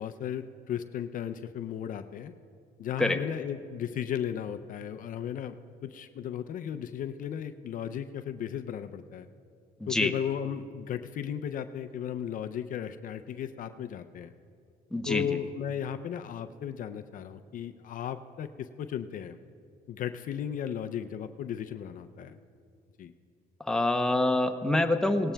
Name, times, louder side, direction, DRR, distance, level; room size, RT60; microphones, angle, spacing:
voice 1, 0.0-2.3 2.8-9.3 9.9-14.3 15.1-19.4 19.9-22.4 23.0-23.1, left 9 dB, 55° left, 9 dB, 0.5 m, -35 dB
voice 2, 9.8-10.1 14.9-15.4 23.7-25.3, left 2 dB, 5° left, 5 dB, 0.7 m, -26 dB
18.5 x 16.0 x 2.2 m, 2.4 s
cardioid pair, 110°, 17 cm